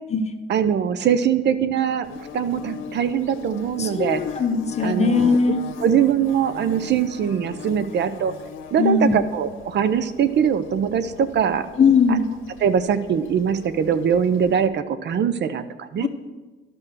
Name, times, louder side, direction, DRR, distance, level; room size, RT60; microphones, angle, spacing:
voice 1, 0.5-2.1 2.3-4.2 4.8-5.4 5.8-8.3 8.7-11.7 12.1-12.2 12.6-16.1, right 8 dB, 60° right, 12 dB, 0.6 m, -22 dB
Bird / Buzz, 2.0-14.7, left 7 dB, 80° left, 0.9 m, -40 dB
voice 2, 3.8-5.6 8.8-9.2 11.8-12.3 16.0-16.1, left 5 dB, 35° left, 7 dB, 1.0 m, -19 dB
11.0 x 6.1 x 6.4 m, 1.3 s
cardioid pair, 90°, 20 cm